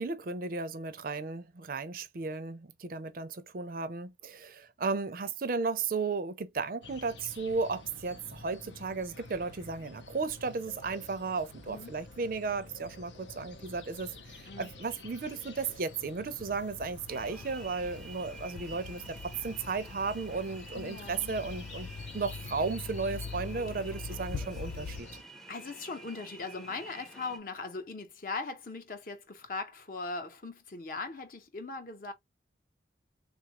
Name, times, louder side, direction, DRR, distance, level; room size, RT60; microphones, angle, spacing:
voice 1, 0.0-21.9 22.1-25.1, right 4 dB, 50° right, 0.5 m, -35 dB
sound 1, 6.8-25.2, left 2 dB, 85° left, 0.8 m, -50 dB
sound 2, 16.3-25.0, left 5 dB, 65° left, 0.3 m, -43 dB
sound 3, 17.1-27.4, right 3 dB, ahead, 0.5 m, -50 dB
voice 2, 20.7-21.3 25.5-32.1, left 3 dB, 50° left, 0.7 m, -39 dB
3.6 x 2.4 x 2.9 m
head